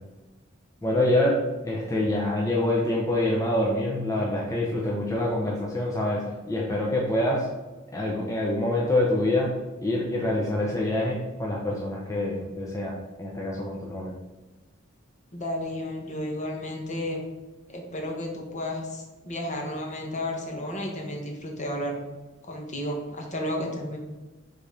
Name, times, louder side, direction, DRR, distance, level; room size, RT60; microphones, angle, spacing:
voice 1, 0.8-7.5 7.9-9.5 9.8-12.9 13.2-14.1, left 1 dB, 15° left, -3 dB, 0.8 m, -26 dB
voice 2, 15.3-17.2 17.7-22.0 22.4-24.0, left 1 dB, 35° left, 1 dB, 1.2 m, -32 dB
5.2 x 4.1 x 5.1 m, 1.2 s
head